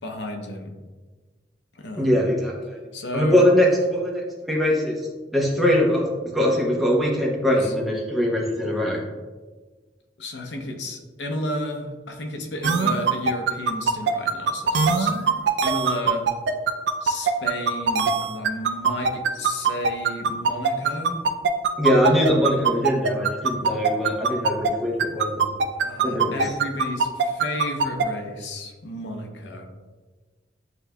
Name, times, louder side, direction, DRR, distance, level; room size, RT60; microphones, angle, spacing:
voice 1, 0.0-0.7 1.7-2.3 2.9-3.4 7.6-7.7 10.2-15.1 15.6-16.2 17.0-21.2 25.8-29.7, left 1 dB, 70° left, 2 dB, 0.7 m, -32 dB
voice 2, 2.0-2.8 3.1-5.0 5.3-9.0 21.8-25.5 26.0-26.5, left 1 dB, ahead, -4 dB, 0.9 m, -22 dB
sound 1, 12.6-24.7 25.0-28.0, right 5 dB, 70° right, 0.4 m, -21 dB
8.1 x 2.7 x 2.2 m, 1.3 s
head